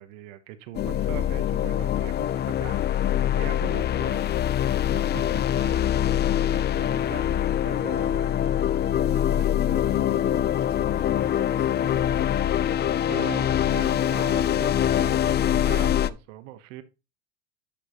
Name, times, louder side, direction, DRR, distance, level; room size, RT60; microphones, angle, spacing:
voice 1, 0.0-4.5 5.1-5.8 6.5-8.4 9.1-9.8 13.1-16.8, right 14 dB, 80° right, 1.2 m, -41 dB
sound 1, 0.7-16.1, left 10 dB, 30° left, 0.4 m, -24 dB
voice 2, 4.8-6.1 9.4-12.2, left 5 dB, 55° left, 1.9 m, -41 dB
sound 2, 10.2-13.5, right 3 dB, 10° right, 1.5 m, -49 dB
10.0 x 5.8 x 3.0 m
supercardioid pair, 110°, 38 cm